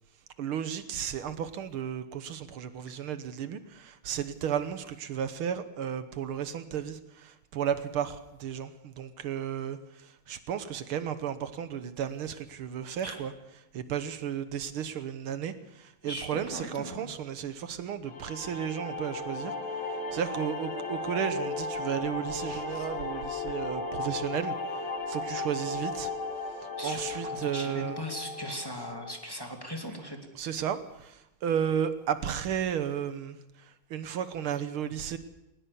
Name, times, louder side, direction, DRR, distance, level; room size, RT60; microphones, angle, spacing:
voice 1, 0.4-26.1 26.6-28.1 30.3-35.2, right 8 dB, 80° right, 11 dB, 1.9 m, -34 dB
voice 2, 16.0-17.1 22.7-22.9 26.8-30.2, equal, 10° left, 2 dB, 2.4 m, -39 dB
sound 1, 18.1-29.1, left 3 dB, 65° left, 2.7 m, -35 dB
19.5 x 19.5 x 6.9 m, 0.89 s
omnidirectional pair, 2.4 m